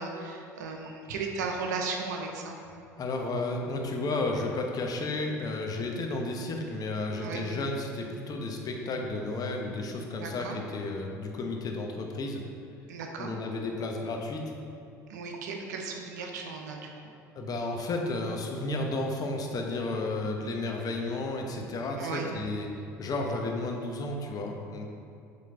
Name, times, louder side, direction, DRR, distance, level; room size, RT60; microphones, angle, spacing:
voice 1, 0.0-2.5 7.2-7.5 10.2-10.5 12.9-13.3 15.1-16.9 22.0-22.3, right 4 dB, 80° right, 2 dB, 0.7 m, -35 dB
voice 2, 3.0-12.4 13.2-14.6 17.3-22.7 23.0-24.9, left 2 dB, 45° left, 2 dB, 0.9 m, -32 dB
7.4 x 3.8 x 3.8 m, 2.6 s
hypercardioid pair, 65°, 9 cm